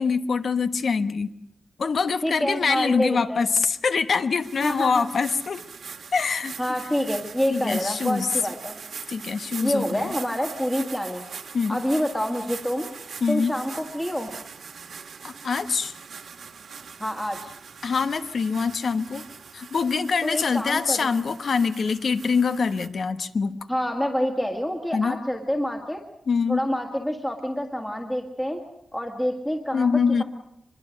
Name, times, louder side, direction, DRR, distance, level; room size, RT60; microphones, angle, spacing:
voice 1, 0.0-1.3 1.8-5.6 6.1-6.5 7.5-8.3 9.1-10.1 11.5-11.8 13.2-13.5 15.2-15.9 17.8-19.2 19.5-23.6 24.9-25.2 26.3-26.6 29.7-30.2, left 5 dB, 55° left, 11 dB, 1.1 m, -24 dB
voice 2, 2.2-3.5 4.6-5.1 6.6-8.7 9.6-12.9 13.3-14.3 17.0-17.5 20.2-21.1 23.7-26.0 26.5-28.6 28.9-29.9, equal, 10° left, 2 dB, 1.8 m, -27 dB
sound 1, 4.4-22.9, right 6 dB, 70° right, 1.7 m, -41 dB
24.5 x 22.0 x 6.4 m, 0.80 s
wide cardioid pair, 165°, 0 cm